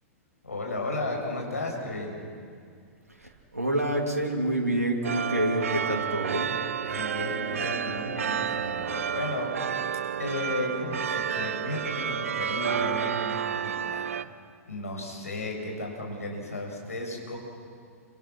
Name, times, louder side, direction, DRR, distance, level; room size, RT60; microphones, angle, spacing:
voice 1, 0.4-2.2 6.8-9.5 10.2-14.2 14.7-17.4, left 2 dB, 75° left, 0 dB, 7.0 m, -34 dB
voice 2, 3.2-6.5, right 1 dB, 85° right, 1 dB, 3.1 m, -27 dB
sound 1, 5.0-14.2, right 8 dB, 65° right, 0.9 m, -30 dB
29.5 x 26.5 x 6.1 m, 2.2 s
figure-of-eight pair, 105°, 8 cm